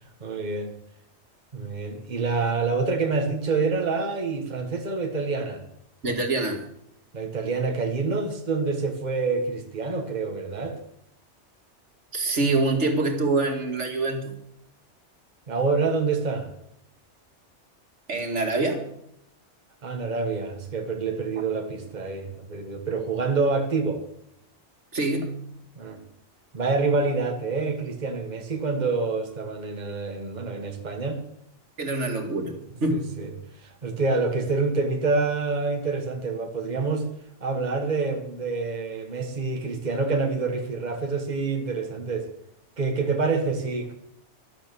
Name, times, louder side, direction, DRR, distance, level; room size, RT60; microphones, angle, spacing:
voice 1, 0.2-0.7 1.5-5.6 7.1-10.8 15.5-16.5 19.8-24.0 25.8-26.0 26.5-31.2 32.9-33.3 33.6-37.1 37.4-42.3 42.8-43.9, right 4 dB, 40° right, 4 dB, 1.5 m, -27 dB
voice 2, 6.0-6.7 12.1-14.3 18.1-18.8 24.9-25.4 31.8-33.1, right 2 dB, 75° right, 3 dB, 2.4 m, -25 dB
13.0 x 12.0 x 6.9 m, 0.74 s
omnidirectional pair, 1.2 m